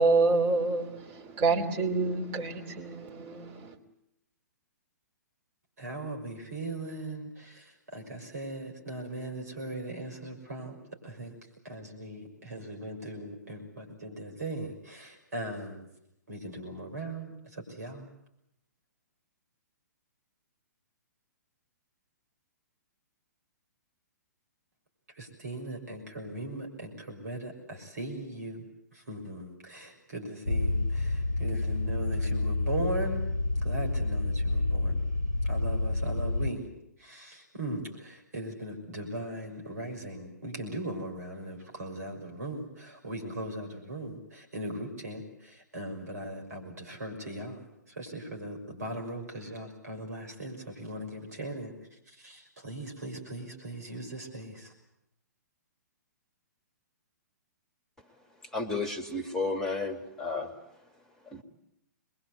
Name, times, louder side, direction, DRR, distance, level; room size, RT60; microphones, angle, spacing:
voice 1, 0.0-3.7, right 3 dB, 25° right, 3.1 m, -27 dB
voice 2, 5.8-10.8 11.0-11.3 11.6-15.9 16.3-18.1 25.2-33.2 33.6-35.0 35.5-36.6 37.0-51.7 52.1-54.7, right 1 dB, 60° right, 6.2 m, -39 dB
sound 1, 30.4-36.5, left 2 dB, 85° right, 4.3 m, -29 dB
voice 3, 58.5-60.5 61.3-61.4, left 3 dB, 5° left, 2.1 m, -32 dB
26.0 x 22.5 x 8.2 m
figure-of-eight pair, 120°, 10 cm